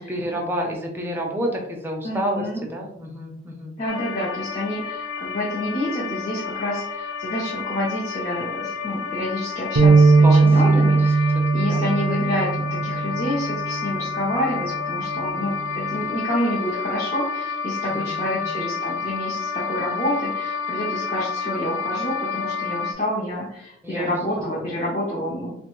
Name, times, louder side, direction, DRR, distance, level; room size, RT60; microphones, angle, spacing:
voice 1, 0.0-3.7 10.1-10.9 11.6-12.5 17.9-18.6 23.8-24.8, equal, 10° right, 0 dB, 0.4 m, -30 dB
voice 2, 2.0-2.6 3.8-25.6, left 1 dB, 35° left, -6 dB, 0.6 m, -28 dB
sound 1, 3.9-22.9, left 5 dB, 65° left, 0.3 m, -30 dB
sound 2, 9.8-14.0 14.5-14.7 15.6-16.0, right 4 dB, 70° right, 0.4 m, -19 dB
3.1 x 2.2 x 2.9 m, 0.80 s
head